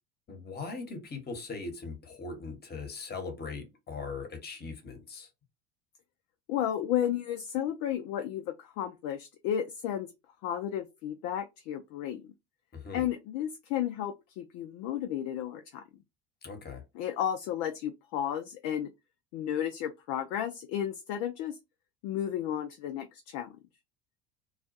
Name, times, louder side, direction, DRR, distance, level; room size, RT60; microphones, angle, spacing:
voice 1, 0.3-5.3 12.7-13.0 16.4-16.8, left 4 dB, 30° left, 1.0 m, -40 dB
voice 2, 6.5-10.1 10.4-12.2 12.9-15.8 16.9-18.9 19.3-21.6 22.0-23.5, left 10 dB, 55° left, 0.5 m, -33 dB
2.4 x 2.2 x 2.6 m
hypercardioid pair, 70°, 32 cm